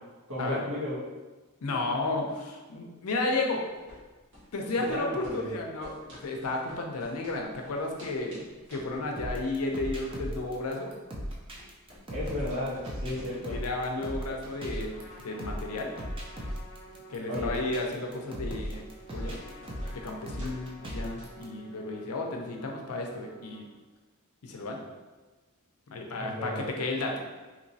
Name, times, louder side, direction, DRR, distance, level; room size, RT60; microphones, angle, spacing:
voice 1, 0.3-1.0 4.9-5.5 12.1-13.6 17.3-17.5 26.2-26.6, left 1 dB, 85° right, -9 dB, 1.5 m, -34 dB
voice 2, 1.6-3.7 4.5-8.4 8.7-10.9 13.5-15.9 17.1-18.9 19.1-19.4 19.9-23.7 24.4-24.8 25.9-27.1, left 2 dB, 90° left, 2 dB, 0.5 m, -33 dB
sound 1, 3.7-21.5, equal, 55° right, 1.3 m, -53 dB
sound 2, 9.2-21.4, equal, 25° right, 0.5 m, -38 dB
Trumpet, 14.9-23.7, equal, 45° left, 0.6 m, -51 dB
3.0 x 3.0 x 2.7 m, 1.3 s
head